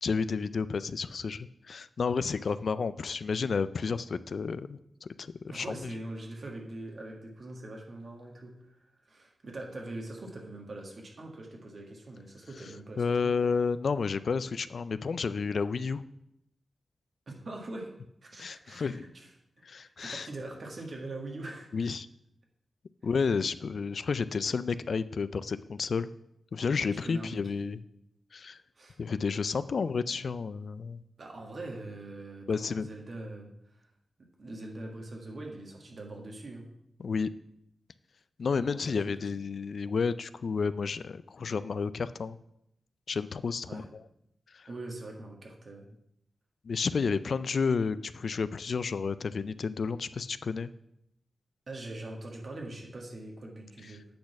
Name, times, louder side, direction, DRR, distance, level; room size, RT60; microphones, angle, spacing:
voice 1, 0.0-5.9 13.0-16.0 18.4-19.0 19.6-20.3 21.7-22.1 23.0-26.1 26.5-27.8 28.3-28.6 29.0-31.0 32.5-32.9 37.0-37.3 38.4-42.4 43.1-44.0 44.5-44.7 46.6-50.7, left 5 dB, 70° left, 15 dB, 0.3 m, -31 dB
voice 2, 5.5-13.3 17.3-17.9 18.2-19.3 19.8-21.9 26.9-27.7 28.7-29.0 31.2-33.9 34.4-36.6 38.5-38.8 43.7-43.9 44.7-45.9 51.7-54.0, right 2 dB, 60° right, 1 dB, 1.7 m, -42 dB
8.5 x 4.0 x 5.8 m, 0.79 s
cardioid pair, 50°, 0 cm